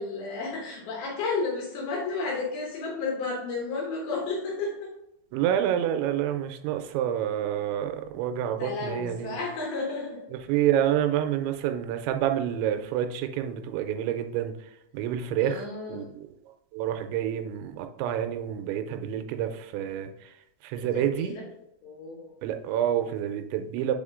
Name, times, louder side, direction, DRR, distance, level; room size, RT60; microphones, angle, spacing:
voice 1, 0.0-4.9 8.6-10.3 15.4-16.1 20.8-21.5 21.8-22.3, left 3 dB, 70° left, -1 dB, 2.6 m, -32 dB
voice 2, 5.3-9.4 10.5-14.5 14.9-16.3 16.7-20.3 20.6-21.3 22.4-23.9, right 10 dB, 85° right, 7 dB, 2.9 m, -28 dB
6.9 x 4.3 x 3.7 m, 0.82 s
omnidirectional pair, 5.2 m